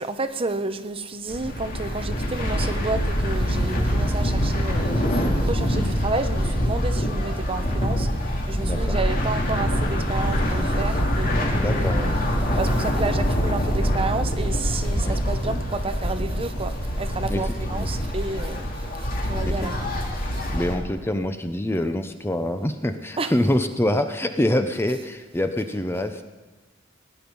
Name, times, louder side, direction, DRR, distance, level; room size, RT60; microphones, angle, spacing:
voice 1, 0.0-8.1 8.5-12.2 12.5-19.7 23.2-23.3, right 3 dB, 30° right, 0.8 m, -31 dB
sound 1, 1.3-20.7, equal, 50° left, 2.3 m, -24 dB
voice 2, 8.6-9.0 11.5-12.0 15.0-15.2 17.3-17.9 19.4-19.9 20.5-26.2, left 1 dB, 10° left, 0.7 m, -26 dB
18.0 x 9.8 x 5.4 m
head